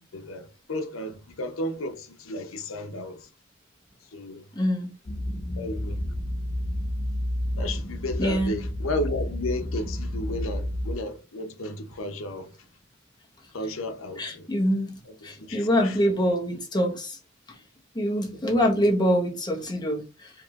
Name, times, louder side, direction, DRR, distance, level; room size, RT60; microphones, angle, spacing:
voice 1, 0.1-3.3 4.1-4.4 5.6-6.0 7.5-12.5 13.5-14.5 15.1-16.3 18.3-18.4, left 1 dB, 90° left, 0.8 m, -33 dB
voice 2, 4.5-4.9 8.2-8.6 14.2-14.9 15.2-17.2 17.9-20.3, equal, 20° left, 1.1 m, -25 dB
sound 1, 5.1-10.9, left 1 dB, 40° left, 0.6 m, -30 dB
4.7 x 3.0 x 2.4 m
head